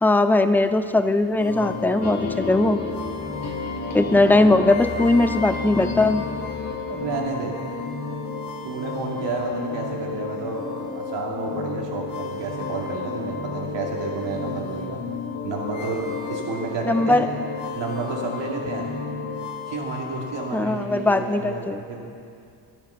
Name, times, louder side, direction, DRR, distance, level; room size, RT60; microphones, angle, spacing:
voice 1, 0.0-2.8 3.9-6.2 16.9-17.3 20.5-21.8, left 2 dB, 5° left, 10 dB, 0.4 m, -19 dB
sound 1, 1.4-20.6, left 4 dB, 85° left, 2.0 m, -32 dB
sound 2, 2.0-7.6, left 4 dB, 35° left, 1.7 m, -34 dB
voice 2, 4.1-4.4 6.9-7.5 8.6-15.0 15.4-17.3 17.7-18.9 19.7-22.0, right 3 dB, 75° right, -1 dB, 2.7 m, -31 dB
12.0 x 12.0 x 5.7 m, 2.4 s
cardioid pair, 100°, 43 cm